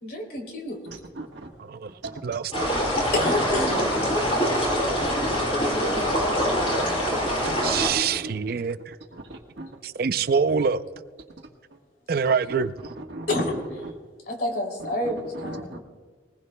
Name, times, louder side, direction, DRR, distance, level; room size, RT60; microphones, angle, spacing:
voice 1, 0.0-0.8 3.1-4.0 5.3-7.0 13.3-13.8 14.3-15.8, left 1 dB, 60° left, 2.9 m, -30 dB
voice 2, 0.9-1.5 2.0-2.2 2.5-3.1 3.6-3.9 4.8-5.4 6.9-8.3 9.1-9.8 11.7-11.8 12.8-13.5 13.8-13.9 15.0-15.8, right 2 dB, 80° right, 1.4 m, -39 dB
voice 3, 1.6-1.9 2.2-2.5 7.6-9.0 9.8-10.8 12.1-12.7, right 6 dB, 55° right, 0.4 m, -25 dB
sound 1, 2.5-7.9, equal, 35° left, 4.9 m, -24 dB
21.0 x 19.5 x 2.2 m
head